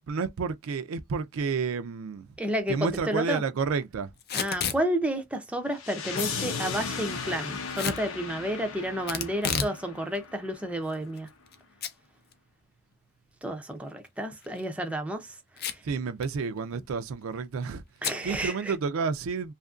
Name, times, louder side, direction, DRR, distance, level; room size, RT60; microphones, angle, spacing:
voice 1, 0.0-2.3 2.7-4.1 15.8-17.8 18.2-19.5, right 5 dB, 85° right, 0.4 m, -30 dB
voice 2, 2.4-3.4 4.3-11.3 13.4-15.3 15.7-15.8 18.0-18.7, equal, 5° right, 0.4 m, -31 dB
Packing tape duct tape / Tearing, 4.2-4.8 7.7-8.0 9.1-9.8 10.1-10.2 10.9-11.5 11.8-11.9 12.3-12.4 14.4-14.6 15.6-15.9 16.2-16.3 16.6-16.9 18.0-18.2, left 7 dB, 50° left, 0.5 m, -31 dB
sound 1, 5.8-10.7, left 5 dB, 85° left, 0.7 m, -36 dB
2.8 x 2.5 x 2.3 m
head